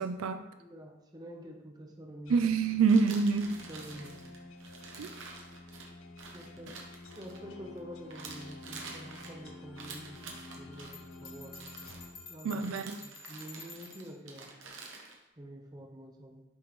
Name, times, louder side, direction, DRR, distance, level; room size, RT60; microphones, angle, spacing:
voice 1, 0.0-0.4 2.3-3.6 5.0-5.1 12.4-13.0, right 5 dB, 90° right, 9 dB, 0.4 m, -26 dB
voice 2, 0.6-2.4 3.7-4.2 6.3-10.2 10.5-11.6 12.3-14.5 15.4-16.4, equal, 20° right, 1 dB, 0.7 m, -47 dB
sound 1, 2.3-12.9, left 2 dB, 80° left, 0.6 m, -50 dB
sound 2, 2.9-7.8 8.1-10.9 11.5-12.0 12.6-15.2, right 4 dB, 65° right, 0.9 m, -48 dB
Bell, 10.9-14.1, left 3 dB, 50° left, 1.3 m, -50 dB
8.4 x 3.6 x 3.1 m, 0.94 s
head